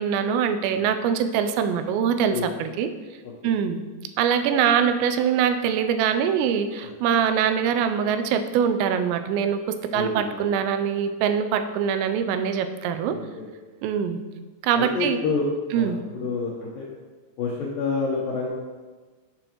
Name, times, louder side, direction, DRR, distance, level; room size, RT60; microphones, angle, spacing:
voice 1, 0.0-2.9 3.4-3.8 4.2-13.2 13.8-14.2 14.6-15.2 15.7-16.0, right 7 dB, 85° right, 8 dB, 2.7 m, -23 dB
voice 2, 9.9-10.4 13.1-13.5 14.7-15.5 15.7-16.9 17.4-18.5, left 4 dB, 75° left, -4 dB, 2.1 m, -28 dB
11.0 x 7.0 x 3.0 m, 1.3 s
omnidirectional pair, 5.2 m